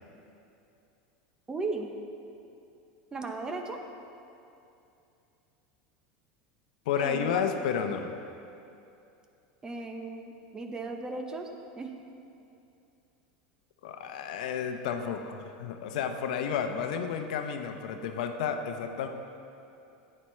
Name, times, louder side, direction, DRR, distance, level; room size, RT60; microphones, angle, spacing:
voice 1, 1.5-1.9 3.1-3.8 7.0-7.4 9.6-11.5 11.8-11.9, right 3 dB, 20° right, 4 dB, 0.8 m, -36 dB
voice 2, 6.9-8.1 13.8-19.1, left 7 dB, 80° left, 6 dB, 0.7 m, -31 dB
11.0 x 8.7 x 3.2 m, 2.7 s
supercardioid pair, 125°, 4 cm